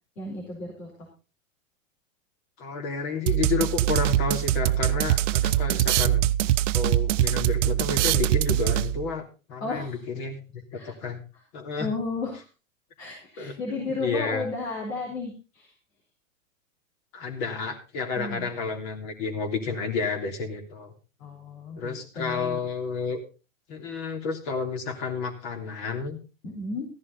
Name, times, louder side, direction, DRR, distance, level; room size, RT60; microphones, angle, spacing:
voice 1, 0.2-1.1 9.6-10.0 10.7-10.9 11.8-12.4 13.0-15.7 18.2-18.5 21.2-22.6 23.9-24.0 26.4-26.9, left 3 dB, 80° left, -1 dB, 4.6 m, -33 dB
voice 2, 2.6-6.2 6.7-9.2 9.5-11.2 11.5-11.9 13.4-14.5 17.1-20.9 21.8-23.2 23.7-26.2, left 4 dB, 50° left, 5 dB, 3.4 m, -31 dB
sound 1, 3.3-9.1, right 13 dB, 65° right, 0.6 m, -23 dB
15.0 x 11.0 x 4.1 m, 0.32 s
hypercardioid pair, 115°, 39 cm